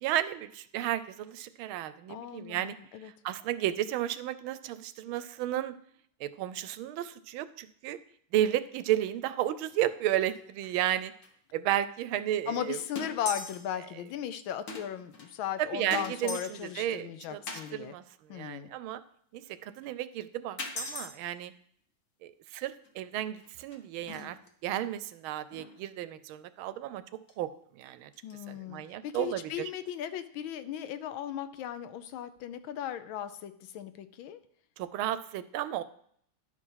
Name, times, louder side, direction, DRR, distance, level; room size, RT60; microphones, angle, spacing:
voice 1, 0.0-2.8 3.0-5.7 6.2-8.0 8.3-11.1 11.5-12.8 15.6-17.4 17.7-18.0 18.3-19.0 19.3-21.5 22.2-24.4 24.6-27.0 27.4-28.1 28.5-29.7 34.8-35.8, right 12 dB, 80° right, 14 dB, 1.4 m, -33 dB
voice 2, 2.1-3.1 12.5-17.9 18.3-18.7 28.2-34.4, left 10 dB, 75° left, 11 dB, 1.4 m, -37 dB
sound 1, 9.7-10.0 10.2-10.4 10.6-10.7 11.2-11.3 12.2-12.3 12.6-12.7 13.0-13.7 14.1-14.2 14.7-15.3 15.9-16.8 17.5-17.7 19.8-19.9 20.6-21.1 22.9-23.0 23.4-24.5 25.5-25.8 27.3-27.4 27.8-27.9 28.1-28.3, left 2 dB, 45° left, 1.3 m, -40 dB
11.0 x 4.9 x 5.6 m, 0.65 s
omnidirectional pair, 2.3 m